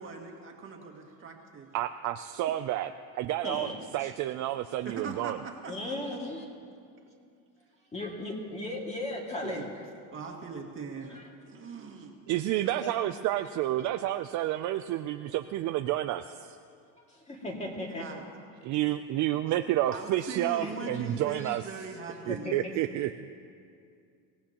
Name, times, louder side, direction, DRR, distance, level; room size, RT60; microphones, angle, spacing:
voice 1, 0.0-1.7 4.8-5.9 9.4-9.7 10.1-11.2 11.5-12.2 17.9-18.2 19.9-22.6, right 5 dB, 30° right, 1 dB, 1.9 m, -40 dB
voice 2, 1.7-2.9 3.2-5.4 12.3-16.6 18.6-21.6 22.3-23.3, right 14 dB, 50° right, 8 dB, 0.5 m, -30 dB
voice 3, 3.4-4.1 5.7-6.4 7.9-9.6 11.1-11.2 12.8-12.9 17.1-18.1 19.3-19.4 20.6-20.9 21.4-21.6 22.3-22.5, left 1 dB, 15° left, -1 dB, 2.2 m, -36 dB
24.0 x 17.5 x 2.9 m, 2.3 s
cardioid pair, 145°, 39 cm